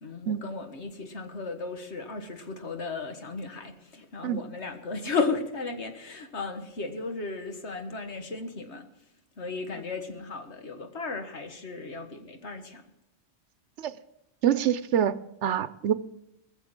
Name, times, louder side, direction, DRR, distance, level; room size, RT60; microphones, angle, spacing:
voice 1, 0.0-8.9 9.4-12.8, left 4 dB, 70° left, 1.8 m, -35 dB
voice 2, 14.4-15.9, right 9 dB, 75° right, 1.0 m, -26 dB
19.5 x 7.2 x 7.4 m
omnidirectional pair, 1.2 m